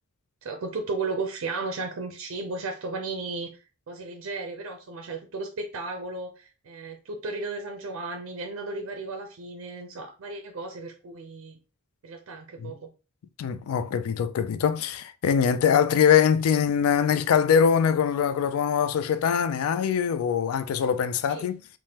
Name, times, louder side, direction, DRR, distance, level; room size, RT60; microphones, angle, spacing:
voice 1, 0.4-11.6 12.0-12.9 21.3-21.5, right 3 dB, 65° right, 0.4 m, -34 dB
voice 2, 13.4-21.6, left 7 dB, 75° left, 0.3 m, -23 dB
3.3 x 2.1 x 2.8 m
head